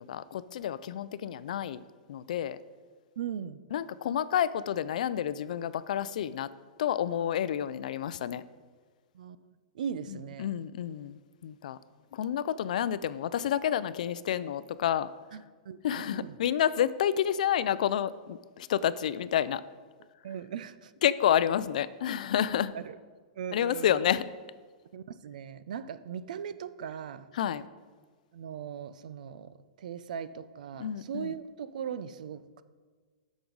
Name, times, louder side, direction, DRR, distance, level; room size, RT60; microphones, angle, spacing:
voice 1, 0.0-1.8 2.1-2.6 3.7-6.5 6.8-8.4 10.1-11.8 12.1-15.1 15.8-19.6 21.0-22.7 23.5-24.2 27.3-27.7 30.8-31.3, left 10 dB, 65° left, 16 dB, 0.4 m, -29 dB
voice 2, 3.2-3.6 9.1-10.5 15.3-16.3 20.2-20.9 22.7-23.0 23.4-24.0 24.9-27.3 28.3-29.5 29.8-32.6, right 8 dB, 70° right, 14 dB, 0.5 m, -39 dB
13.0 x 6.1 x 3.9 m, 1.5 s
supercardioid pair, 165°, 4 cm